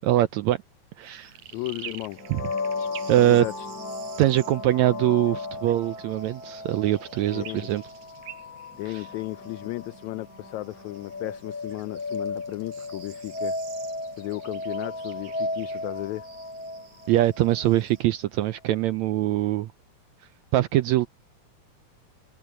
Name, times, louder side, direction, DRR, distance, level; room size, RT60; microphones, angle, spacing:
voice 1, 0.0-0.6 1.0-1.3 2.3-2.4 3.1-3.4 4.2-7.8 8.9-9.0 17.1-19.7 20.5-21.1, right 14 dB, 80° right, 1.6 m, -23 dB
sound 1, 1.0-18.0, right 8 dB, 60° right, 5.2 m, -48 dB
voice 2, 1.5-2.2 3.1-3.7 7.3-7.7 8.8-13.6 14.2-16.3, left 18 dB, 80° left, 1.7 m, -34 dB
sound 2, 2.1-17.8, left 2 dB, 25° left, 3.5 m, -35 dB
open air
omnidirectional pair, 3.8 m